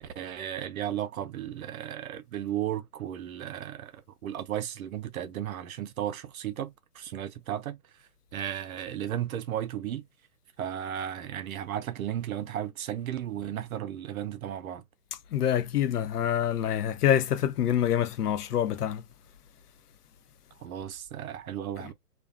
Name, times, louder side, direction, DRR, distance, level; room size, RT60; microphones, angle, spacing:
voice 1, 0.0-7.8 8.3-10.0 10.6-14.8 20.6-21.9, right 11 dB, 65° right, 0.6 m, -34 dB
voice 2, 15.3-19.0, left 10 dB, 75° left, 0.7 m, -26 dB
2.5 x 2.2 x 2.4 m
hypercardioid pair, 155°, 46 cm